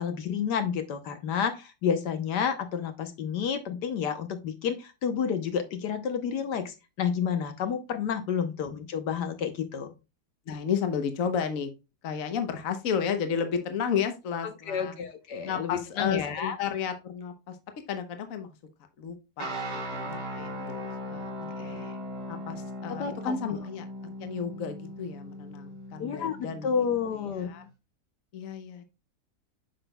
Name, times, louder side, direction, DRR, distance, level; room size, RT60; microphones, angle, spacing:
voice 1, 0.0-9.9 14.7-16.6 21.6-21.9 22.9-23.3 26.0-27.5, left 7 dB, 75° left, 8 dB, 1.5 m, -30 dB
voice 2, 10.5-11.7 12.0-14.9 15.4-17.6 17.9-18.5 19.0-21.8 22.3-23.8 24.2-26.7 27.1-27.6 28.3-28.8, left 7 dB, 55° left, 8 dB, 1.2 m, -32 dB
sound 1, 19.4-27.6, equal, 65° right, 2.5 m, -38 dB
8.9 x 5.9 x 2.3 m, 0.27 s
omnidirectional pair, 1.9 m